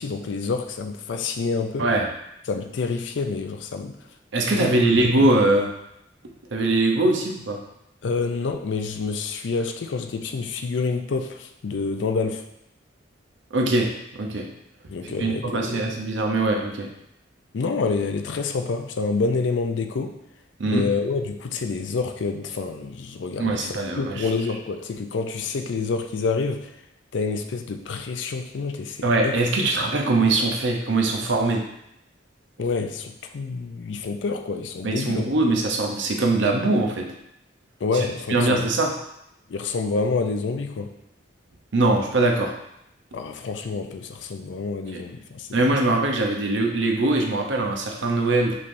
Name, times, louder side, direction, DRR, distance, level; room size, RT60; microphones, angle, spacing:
voice 1, 0.0-1.9 2.5-4.0 4.4-5.3 8.0-12.4 14.9-15.9 17.5-20.2 20.7-26.7 27.1-29.7 32.6-35.3 37.8-38.7 39.5-40.9 43.1-45.8, left 4 dB, 75° left, 6 dB, 0.4 m, -28 dB
voice 2, 4.3-5.7 6.5-7.6 13.5-14.5 15.0-16.9 20.6-20.9 23.4-24.3 29.0-31.6 34.8-37.1 37.9-38.0 38.3-38.9 41.7-42.5 44.9-45.0 45.5-48.5, right 2 dB, 75° right, 1 dB, 0.7 m, -22 dB
5.4 x 3.3 x 2.6 m, 0.81 s
head